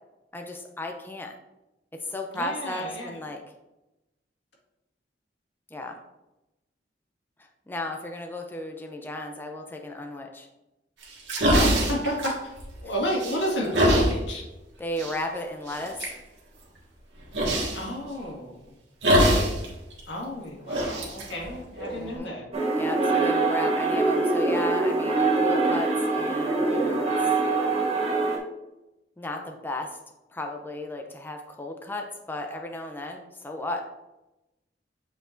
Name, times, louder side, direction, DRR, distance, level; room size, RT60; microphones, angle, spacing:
voice 1, 0.3-1.3 2.0-3.4 5.7-6.0 7.4-10.5 14.8-16.0 21.9-22.3 22.8-27.1 29.2-30.0 30.3-33.8, left 1 dB, 10° left, 3 dB, 0.5 m, -34 dB
voice 2, 2.3-3.2 11.5-12.5 12.8-14.4 17.7-18.8 19.2-19.4 20.1-22.4, equal, 80° left, -2 dB, 1.8 m, -31 dB
sound 1, 11.0-12.9 13.2-14.1 15.0-15.1 15.7-16.1 17.3-17.8 19.0-19.6 19.9-20.0 20.7-22.2, equal, 90° right, 1.7 m, -23 dB
sound 2, 22.5-28.4, right 3 dB, 35° right, 1.4 m, -24 dB
7.6 x 5.1 x 2.6 m, 0.98 s
head